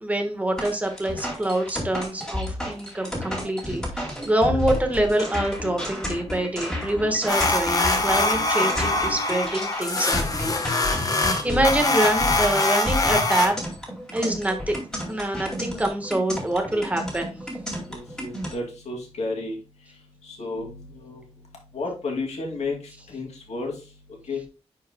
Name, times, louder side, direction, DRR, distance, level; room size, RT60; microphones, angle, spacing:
voice 1, 0.0-10.2 11.0-13.6 14.1-14.8 15.1-17.3, right 1 dB, 15° right, 4 dB, 1.3 m, -25 dB
sound 1, 0.6-18.5, left 1 dB, 5° left, 2.3 m, -31 dB
sound 2, 7.3-13.5, left 2 dB, 35° left, 1.2 m, -23 dB
voice 2, 17.9-19.6 20.3-21.2 21.7-22.8 23.1-23.7 24.3-24.4, left 3 dB, 85° left, 1 dB, 2.4 m, -32 dB
10.5 x 4.7 x 2.2 m, 0.30 s
wide cardioid pair, 160°, 11 cm